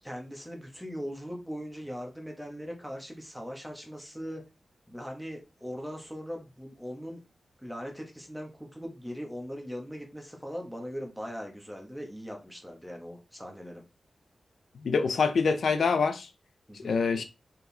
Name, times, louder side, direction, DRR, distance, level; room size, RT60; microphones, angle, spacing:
voice 1, 0.0-4.4 4.9-7.2 7.6-13.8 16.7-17.0, equal, ahead, 1.6 m, -40 dB
voice 2, 14.8-16.3 16.8-17.2, left 5 dB, 80° left, 0.9 m, -25 dB
6.6 x 4.7 x 3.5 m
wide cardioid pair, 165°, 0 cm